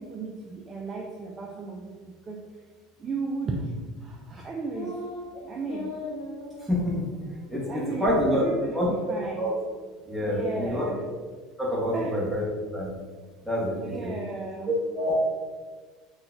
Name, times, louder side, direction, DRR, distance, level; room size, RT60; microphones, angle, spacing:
voice 1, 0.0-2.4 3.0-4.9 5.4-5.9 7.7-9.5 10.2-11.0 11.9-12.2 13.8-14.7, right 3 dB, 25° right, -1 dB, 0.3 m, -34 dB
sound 1, 4.7-5.3 5.7-6.8 7.2-7.3 7.7-8.0 8.3-9.2, left 2 dB, 75° left, 0.9 m, -38 dB
voice 2, 6.6-7.0 7.5-8.4 8.7-8.9 9.4-9.5 10.1-10.8 11.6-12.4 12.7-12.9 13.4-14.1 14.7-15.1, equal, 5° right, -6 dB, 0.9 m, -27 dB
3.9 x 2.2 x 2.4 m, 1.4 s
supercardioid pair, 130°, 0 cm